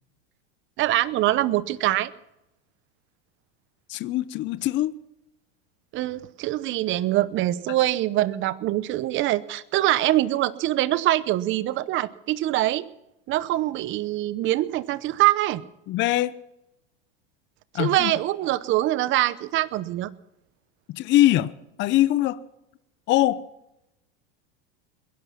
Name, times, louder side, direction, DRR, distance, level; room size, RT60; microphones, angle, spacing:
voice 1, 0.8-2.1 5.9-12.8 13.3-15.6 17.8-20.1, right 15 dB, 40° right, 0.9 m, -24 dB
voice 2, 3.9-4.9 15.9-16.3 17.7-18.1 20.9-21.5 21.8-22.4 23.1-23.4, left 15 dB, 40° left, 0.7 m, -22 dB
21.5 x 11.5 x 5.7 m
supercardioid pair, 120°, 30 cm